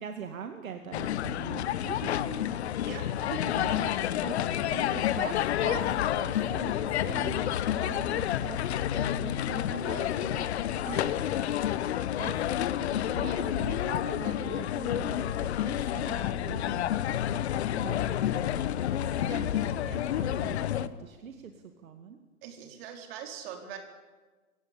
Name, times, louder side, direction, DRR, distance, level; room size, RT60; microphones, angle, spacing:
voice 1, 0.0-2.5 3.5-4.4 4.7-7.5 7.8-8.6 8.9-10.5 12.1-16.9 17.8-18.6 19.3-21.5 21.8-22.2, right 7 dB, 65° right, 6 dB, 2.2 m, -43 dB
sound 1, 0.9-20.9, left 11 dB, 45° left, 1.1 m, -29 dB
voice 2, 2.9-3.6 10.8-11.3 18.1-18.2 19.2-19.5 22.4-23.8, right 7 dB, 40° right, 3 dB, 4.7 m, -42 dB
26.0 x 16.5 x 8.8 m, 1.3 s
hypercardioid pair, 130°, 44 cm